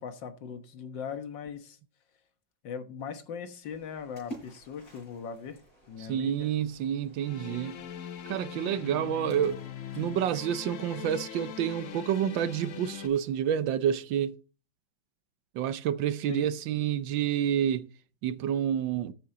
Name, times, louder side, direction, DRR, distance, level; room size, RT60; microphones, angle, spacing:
voice 1, 0.0-1.8 2.6-5.6 5.9-6.5 16.3-16.4, left 7 dB, 75° left, 1.9 m, -39 dB
Splash splatter, 3.6-13.6, right 1 dB, 35° left, 8.2 m, -53 dB
voice 2, 6.1-7.8 8.3-9.6 10.0-14.3 15.5-17.9 18.2-19.1, right 9 dB, 80° right, 1.5 m, -29 dB
sound 1, 7.2-13.1, left 9 dB, 50° left, 1.0 m, -41 dB
13.5 x 7.9 x 3.9 m
omnidirectional pair, 2.0 m